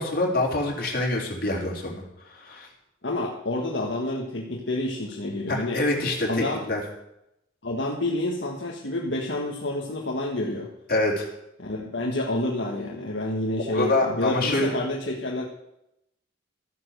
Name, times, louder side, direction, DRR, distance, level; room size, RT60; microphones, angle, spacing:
voice 1, 0.0-2.7 5.5-6.3 6.7-6.8 10.9-11.3 13.7-14.7, left 2 dB, 50° left, -1 dB, 3.9 m, -25 dB
voice 2, 3.0-5.8 6.3-6.6 7.6-10.7 11.6-15.5, left 1 dB, 65° left, -1 dB, 1.7 m, -29 dB
14.0 x 9.7 x 6.6 m, 0.82 s
head